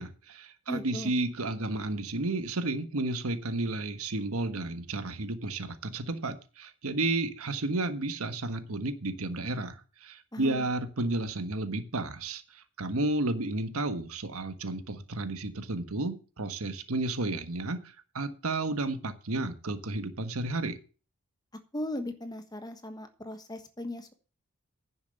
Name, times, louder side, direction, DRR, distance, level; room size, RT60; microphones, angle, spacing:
voice 1, 0.0-20.8, right 2 dB, 80° right, 10 dB, 1.3 m, -32 dB
voice 2, 0.7-1.1 10.3-10.7 21.7-24.1, left 1 dB, 20° left, 8 dB, 1.3 m, -37 dB
10.5 x 7.2 x 6.7 m, 0.36 s
head